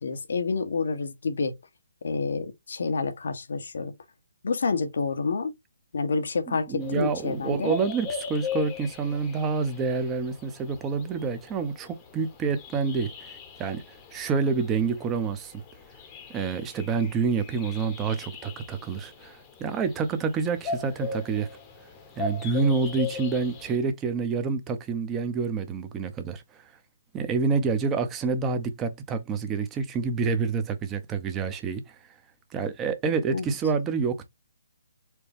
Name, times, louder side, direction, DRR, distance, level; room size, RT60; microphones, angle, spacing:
voice 1, 0.0-1.5 2.0-3.9 4.4-5.5 5.9-7.7 33.3-33.5, left 4 dB, 70° left, 0.9 m, -28 dB
voice 2, 6.5-15.6 16.3-21.5 22.2-26.7 27.1-32.0 32.5-34.3, right 5 dB, 15° right, 0.7 m, -28 dB
sound 1, 6.8-23.8, left 5 dB, 20° left, 0.9 m, -39 dB
4.4 x 2.3 x 3.4 m
hypercardioid pair, 150°, 0 cm